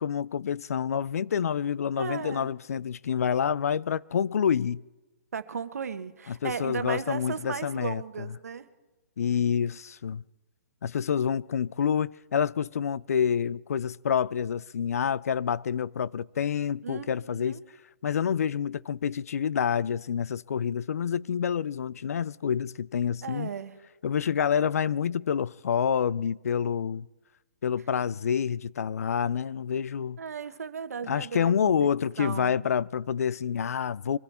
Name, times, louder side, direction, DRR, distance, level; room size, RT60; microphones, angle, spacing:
voice 1, 0.0-4.8 6.3-8.3 9.2-10.2 10.8-17.6 18.0-23.5 24.0-27.1 27.6-30.2 31.1-34.2, left 7 dB, 80° left, 0.4 m, -28 dB
voice 2, 1.9-2.5 5.3-8.6 16.8-17.6 23.2-23.8 30.2-31.9 32.2-32.6, right 6 dB, 85° right, 1.2 m, -36 dB
24.0 x 13.0 x 4.3 m
hypercardioid pair, 155°, 8 cm